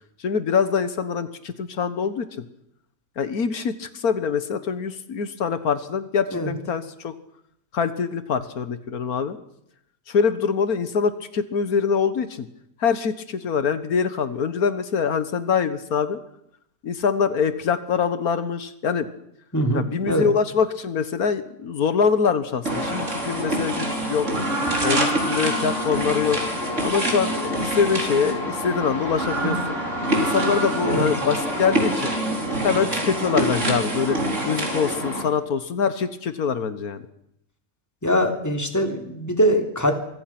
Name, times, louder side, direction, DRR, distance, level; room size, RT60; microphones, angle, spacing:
voice 1, 0.2-2.5 3.2-7.1 7.7-9.4 10.1-12.5 12.8-16.2 16.8-19.1 19.7-24.3 24.8-26.4 26.8-29.8 30.2-32.1 32.6-34.2 34.4-37.0, left 6 dB, 85° left, 12 dB, 1.8 m, -24 dB
voice 2, 19.5-20.3 30.8-31.0 38.0-39.9, equal, 10° left, 4 dB, 3.2 m, -22 dB
sound 1, 22.6-35.2, right 1 dB, 55° right, 4.6 m, -25 dB
25.5 x 24.5 x 6.1 m, 0.75 s
omnidirectional pair, 1.5 m